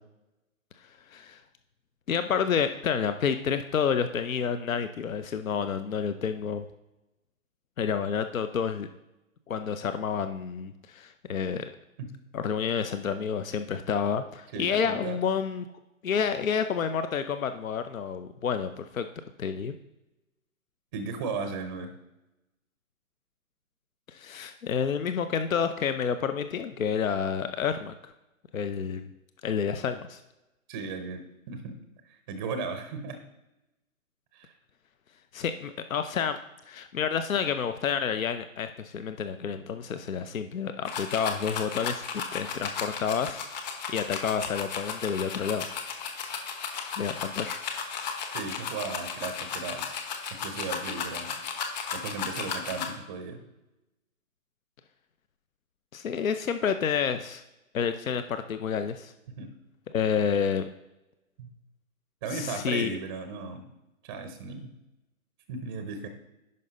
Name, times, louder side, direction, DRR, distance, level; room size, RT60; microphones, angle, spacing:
voice 1, 2.1-6.6 7.8-8.9 9.5-11.7 12.3-15.7 16.0-19.1 19.4-19.7 24.1-27.9 28.5-29.1 29.4-30.2 35.3-36.4 36.7-43.4 43.9-45.7 47.0-47.6 55.9-57.4 57.7-59.1 59.9-60.7 62.3-62.9, left 7 dB, 70° left, 10 dB, 0.7 m, -29 dB
voice 2, 14.5-15.2 20.9-21.9 30.7-31.8 32.0-33.2 34.3-34.5 48.3-49.8 50.4-51.3 51.9-53.4 59.4-59.5 61.4-61.5 62.2-63.6 64.0-64.7 65.5-66.1, right 4 dB, 15° right, 8 dB, 0.6 m, -36 dB
sound 1, 40.8-52.9, left 6 dB, 30° left, 1.1 m, -35 dB
10.5 x 5.5 x 3.9 m, 0.96 s
figure-of-eight pair, 130°, 42 cm